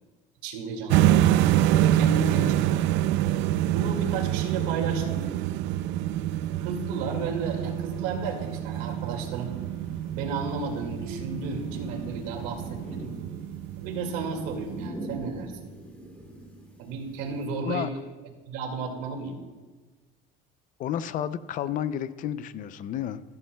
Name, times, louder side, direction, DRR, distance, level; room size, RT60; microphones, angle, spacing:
voice 1, 0.4-1.3 1.8-2.8 3.7-5.3 6.6-9.6 10.1-13.1 13.8-15.5 16.8-17.9 18.5-19.4, right 4 dB, 90° right, 2 dB, 2.2 m, -33 dB
sound 1, 0.9-14.9, right 13 dB, 70° right, 0.4 m, -26 dB
sound 2, 7.9-13.1, left 5 dB, 70° left, 1.2 m, -50 dB
sound 3, 9.2-17.5, right 1 dB, 10° left, 2.1 m, -44 dB
voice 2, 20.8-23.2, left 10 dB, 45° left, 14 dB, 0.5 m, -31 dB
14.0 x 12.5 x 2.3 m, 1.3 s
cardioid pair, 140°, 19 cm